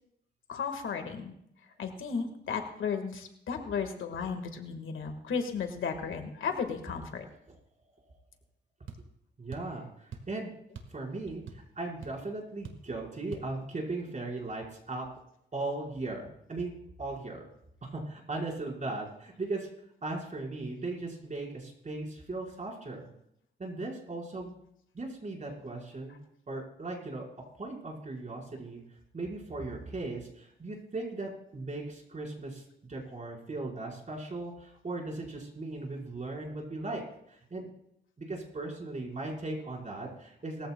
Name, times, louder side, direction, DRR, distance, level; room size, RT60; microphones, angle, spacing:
voice 1, 0.5-1.3 1.8-7.3, left 6 dB, 80° left, 6 dB, 1.7 m, -34 dB
sound 1, 8.9-9.1 9.5-9.8 10.1-10.3 10.8-11.0 11.3-11.8 12.0-12.2 12.6-12.9 13.3-13.5, right 6 dB, 80° right, 1.6 m, -44 dB
voice 2, 9.4-10.5 10.9-15.1 15.5-16.7 17.0-17.5 17.8-19.7 20.0-23.1 23.6-24.5 24.9-26.2 26.5-27.2 27.6-28.8 29.1-37.7 38.2-40.7, right 2 dB, 40° right, -2 dB, 4.7 m, -38 dB
20.0 x 14.5 x 2.3 m, 0.76 s
cardioid pair, 85°, 20 cm